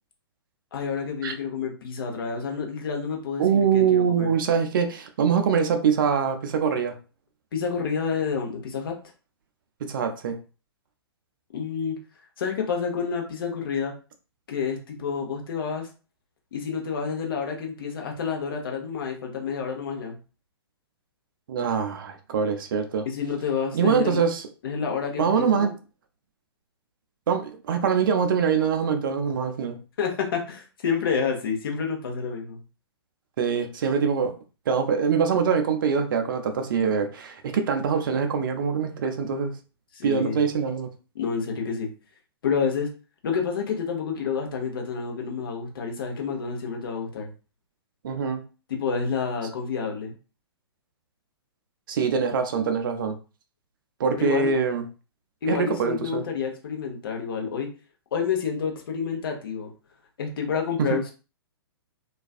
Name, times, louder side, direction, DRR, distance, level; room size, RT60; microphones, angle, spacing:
voice 1, 0.7-4.4 7.5-8.9 11.5-12.0 12.4-13.9 14.5-15.9 16.5-20.2 23.1-24.2 24.6-25.7 30.0-32.6 39.9-40.4 41.1-41.9 42.4-42.9 43.2-47.3 48.7-50.1 54.2-54.5 55.4-57.7 58.1-59.7 60.2-61.1, left 6 dB, 60° left, 2 dB, 0.8 m, -29 dB
voice 2, 3.4-7.0 9.9-10.4 21.5-23.1 23.7-24.4 25.2-25.7 27.3-29.8 33.4-34.3 34.7-39.5 40.0-40.9 48.0-48.4 51.9-53.2 54.0-54.8 55.5-56.2 60.8-61.0, right 6 dB, 50° right, 6 dB, 0.5 m, -24 dB
2.4 x 2.3 x 2.4 m, 0.34 s
figure-of-eight pair, 115°, 14 cm